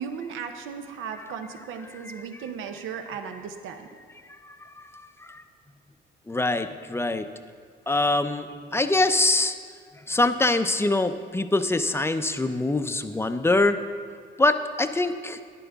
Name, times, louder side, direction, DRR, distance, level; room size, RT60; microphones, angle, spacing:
voice 1, 0.0-3.9, right 6 dB, 85° right, 6 dB, 0.8 m, -36 dB
voice 2, 4.4-5.4 6.3-7.3 7.9-8.5 8.7-9.5 10.1-13.8 14.4-15.4, left 2 dB, 10° left, 9 dB, 0.5 m, -24 dB
11.0 x 10.0 x 3.5 m, 2.1 s
cardioid pair, 90°, 20 cm